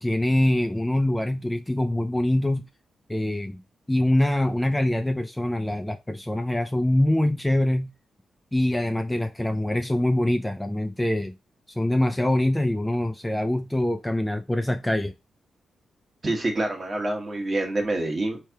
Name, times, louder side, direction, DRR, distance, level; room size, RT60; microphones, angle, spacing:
voice 1, 0.0-2.6 3.1-3.6 3.9-7.9 8.5-11.3 11.8-15.1, left 1 dB, 10° left, 0.3 m, -24 dB
voice 2, 16.2-18.4, right 2 dB, 35° right, 1.2 m, -26 dB
3.3 x 3.2 x 2.7 m
cardioid pair, 85°, 0 cm